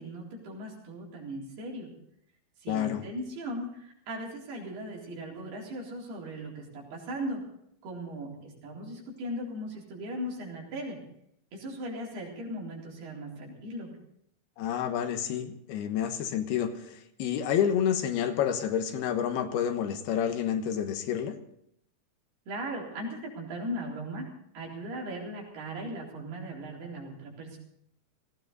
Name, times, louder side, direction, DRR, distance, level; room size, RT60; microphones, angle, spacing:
voice 1, 0.0-1.9 2.6-7.4 7.8-11.0 11.5-13.9 22.5-24.3 24.5-27.6, right 1 dB, 85° right, -2 dB, 5.9 m, -38 dB
voice 2, 2.7-3.1 14.6-21.4, left 9 dB, 90° left, 7 dB, 3.3 m, -29 dB
18.5 x 16.5 x 4.1 m, 0.73 s
omnidirectional pair, 4.4 m